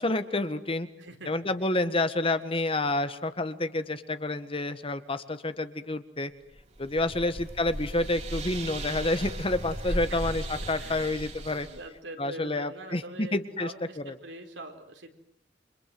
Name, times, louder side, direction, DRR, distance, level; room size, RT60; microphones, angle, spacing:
voice 1, 0.0-0.9 1.2-6.3 6.8-11.7 12.2-13.0 13.3-13.7 14.0-14.1, left 2 dB, 30° left, 11 dB, 1.6 m, -29 dB
voice 2, 1.0-1.3 7.1-7.4 9.8-10.2 10.8-15.2, right 2 dB, 85° right, 4 dB, 4.4 m, -44 dB
sound 1, 6.5-11.9, right 1 dB, 40° right, 3.2 m, -36 dB
29.5 x 25.5 x 7.9 m, 0.72 s
head